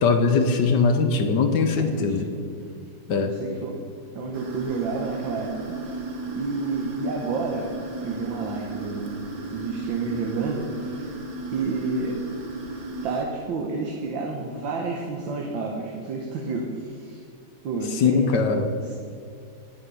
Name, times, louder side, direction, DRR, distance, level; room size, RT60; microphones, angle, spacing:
voice 1, 0.0-2.3 3.1-3.4 18.0-18.7, left 4 dB, 65° left, 6 dB, 1.4 m, -21 dB
voice 2, 1.8-2.3 3.2-3.7 4.1-6.0 6.3-9.2 9.5-11.0 11.5-12.2 13.0-17.2 17.6-18.4 18.8-18.9, right 3 dB, 70° right, 1 dB, 1.8 m, -30 dB
sound 1, 4.3-13.2, right 3 dB, 50° right, 1.5 m, -35 dB
11.0 x 9.6 x 5.4 m, 2.4 s
omnidirectional pair, 2.2 m